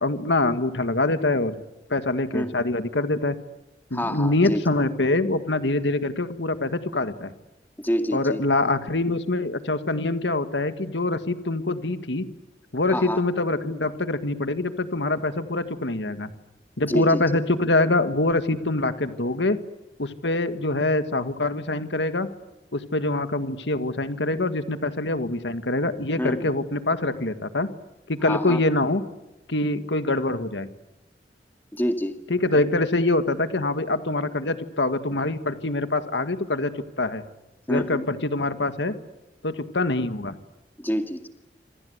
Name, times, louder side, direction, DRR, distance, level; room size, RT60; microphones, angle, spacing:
voice 1, 0.0-1.6 1.9-3.4 3.9-7.3 8.1-12.2 12.7-16.3 16.8-19.6 20.0-22.3 22.7-27.7 28.1-29.0 29.5-30.7 32.3-36.7 37.0-37.2 37.7-38.9 39.4-40.4, left 2 dB, 85° left, 10 dB, 1.8 m, -24 dB
voice 2, 3.9-4.6 7.8-8.4 12.9-13.2 16.8-17.2 26.2-26.5 28.3-28.6 31.7-32.2 37.7-38.0 40.8-41.2, equal, 10° left, 6 dB, 2.2 m, -27 dB
27.0 x 27.0 x 8.1 m, 0.98 s
head